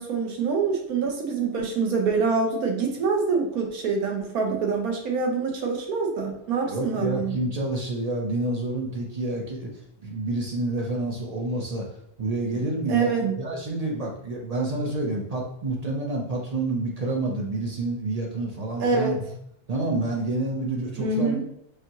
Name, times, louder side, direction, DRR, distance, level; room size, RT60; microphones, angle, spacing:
voice 1, 0.0-7.3 12.9-13.3 18.8-19.1 21.0-21.4, right 4 dB, 80° right, 1 dB, 1.3 m, -25 dB
voice 2, 6.6-9.7 10.0-11.9 12.2-13.1 13.4-19.3 19.7-21.4, right 2 dB, 55° right, -1 dB, 0.4 m, -28 dB
4.8 x 2.6 x 2.9 m, 0.72 s
omnidirectional pair, 1.5 m